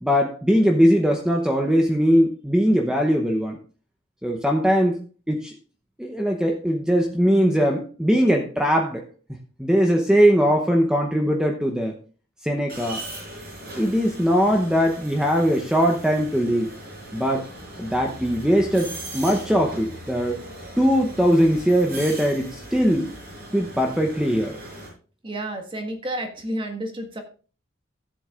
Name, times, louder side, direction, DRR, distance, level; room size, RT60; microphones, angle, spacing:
voice 1, 0.0-3.6 4.2-5.6 6.0-9.0 9.6-11.9 12.4-13.0 13.8-16.7 17.1-17.4 17.8-20.4 20.8-23.1 23.5-24.6, equal, 5° right, 2 dB, 0.8 m, -20 dB
sound 1, 12.7-24.9, right 1 dB, 50° right, 5.5 m, -39 dB
voice 2, 25.2-27.2, right 1 dB, 25° right, 4 dB, 1.5 m, -30 dB
14.5 x 7.9 x 2.4 m, 0.37 s
head